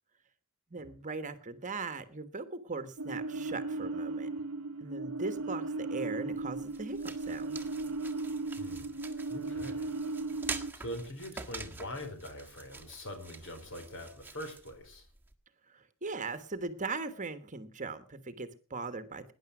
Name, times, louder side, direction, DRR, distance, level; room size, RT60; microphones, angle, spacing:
voice 1, 0.7-4.3 4.8-7.6 15.7-19.3, right 3 dB, 35° right, 11 dB, 1.3 m, -39 dB
sound 1, 3.0-10.7, right 3 dB, 70° right, 0.9 m, -36 dB
sound 2, 6.3-15.3, right 4 dB, 10° right, 1.6 m, -46 dB
voice 2, 8.5-8.9 9.3-10.3 10.7-15.1, left 1 dB, 60° left, 7 dB, 4.4 m, -43 dB
18.5 x 10.5 x 6.0 m, 0.39 s
head